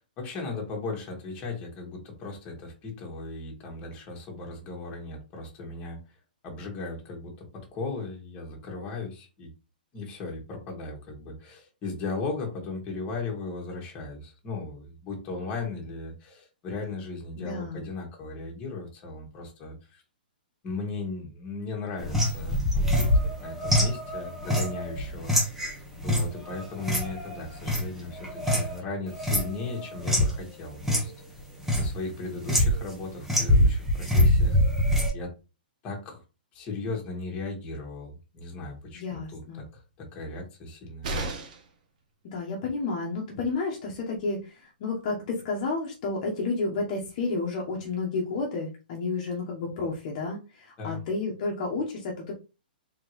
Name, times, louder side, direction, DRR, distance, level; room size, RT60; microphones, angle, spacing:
voice 1, 0.2-6.0 6.4-7.5 7.7-9.5 9.9-20.0 20.6-23.1 23.4-25.7 26.0-31.1 31.7-34.6 35.1-35.3 35.8-36.2 36.5-41.1 50.8-51.0, left 3 dB, 25° left, 0 dB, 1.7 m, -37 dB
voice 2, 17.4-17.9 38.9-39.6 42.3-52.3, left 3 dB, 45° left, -1 dB, 1.2 m, -31 dB
sound 1, 22.0-28.8 29.1-30.4 30.8-31.0 31.4-31.9 32.4-32.9 33.2-35.1, left 1 dB, 5° right, 1.2 m, -24 dB
sound 2, 41.0-41.8 43.7-43.8 44.1-44.2, right 2 dB, 55° right, 1.2 m, -33 dB
3.8 x 3.5 x 3.1 m, 0.30 s
hypercardioid pair, 145°, 5 cm